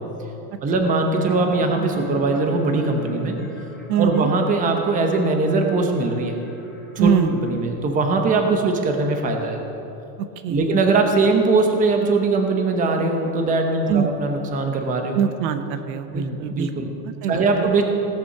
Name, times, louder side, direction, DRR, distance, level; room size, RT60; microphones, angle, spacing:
voice 1, 0.6-3.4 4.0-6.4 7.0-9.6 10.5-15.2 16.1-16.9 17.3-17.8, right 3 dB, 15° right, 3 dB, 0.8 m, -21 dB
sound 1, 1.1-7.5, right 5 dB, ahead, 0.3 m, -38 dB
voice 2, 3.9-4.3 7.0-7.3 10.4-10.7 13.9-14.1 15.1-17.7, right 8 dB, 85° right, 10 dB, 1.1 m, -23 dB
17.0 x 6.9 x 6.6 m, 2.9 s
supercardioid pair, 170°, 50 cm